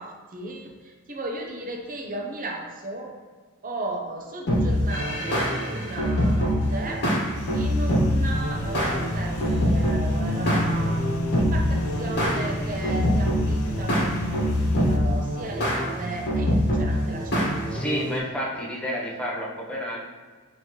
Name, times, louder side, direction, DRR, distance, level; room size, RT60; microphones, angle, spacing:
voice 1, 0.0-3.1 3.6-7.0 7.5-14.5 14.8-17.7, right 2 dB, 40° right, 1 dB, 0.7 m, -35 dB
sound 1, 4.5-18.2, equal, 50° left, 1.4 m, -25 dB
sound 2, 7.3-15.0, left 1 dB, 65° left, 0.5 m, -31 dB
voice 2, 17.7-20.0, equal, 5° left, -4 dB, 0.8 m, -30 dB
5.5 x 3.2 x 3.0 m, 1.5 s
head